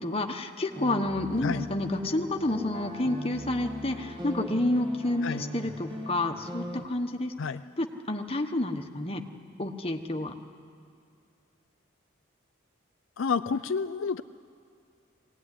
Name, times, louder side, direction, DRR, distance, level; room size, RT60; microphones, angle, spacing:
voice 1, 0.0-7.3 7.8-9.2 9.6-10.4, left 1 dB, 30° left, 5 dB, 1.1 m, -29 dB
sound 1, 0.7-6.9, left 1 dB, 25° right, 1.6 m, -39 dB
voice 2, 13.2-14.2, left 5 dB, 70° left, 11 dB, 0.4 m, -29 dB
21.0 x 17.0 x 9.8 m, 2.4 s
head